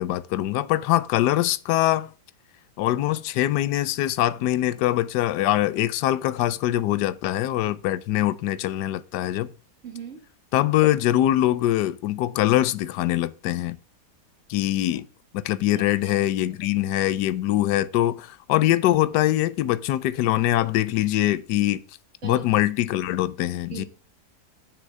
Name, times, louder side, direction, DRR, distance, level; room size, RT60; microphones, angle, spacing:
voice 1, 0.0-2.1 2.8-9.5 10.5-13.8 14.5-15.1 15.3-21.8 22.2-23.8, left 14 dB, 85° left, 1.2 m, -23 dB
voice 2, 9.8-10.2 15.7-16.3 16.6-16.7 22.2-22.4 23.7-23.9, right 7 dB, 45° right, 1.8 m, -39 dB
7.3 x 6.4 x 6.4 m
omnidirectional pair, 1.8 m